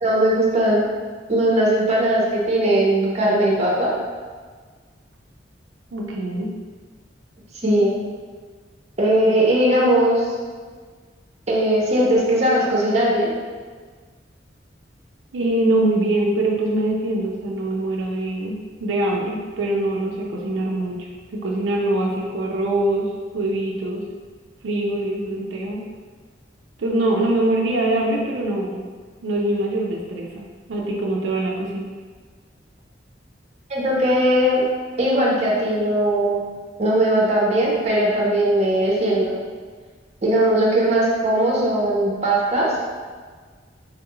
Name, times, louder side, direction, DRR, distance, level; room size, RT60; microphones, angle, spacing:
voice 1, 0.0-0.9 1.3-3.9 7.6-8.0 9.0-10.2 11.5-13.3 33.7-34.6 35.0-36.4 36.8-39.4 40.2-42.7, right 1 dB, 35° right, -4 dB, 0.6 m, -19 dB
voice 2, 5.9-6.5 15.3-21.0 21.3-23.1 23.3-24.0 24.6-25.8 26.8-28.8 29.2-31.9, right 1 dB, 90° right, -2 dB, 0.5 m, -23 dB
3.5 x 2.3 x 3.0 m, 1.5 s
head